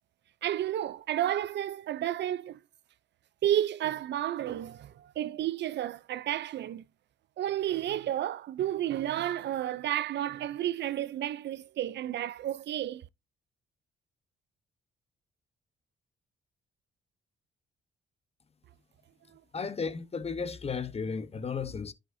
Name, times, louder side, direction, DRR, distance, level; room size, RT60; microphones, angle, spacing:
voice 1, 0.4-2.6 3.4-6.8 7.4-13.0, right 12 dB, 65° right, 0.5 m, -31 dB
voice 2, 19.5-21.9, left 5 dB, 30° left, 0.9 m, -34 dB
11.0 x 5.1 x 2.6 m
cardioid pair, 90°, 20 cm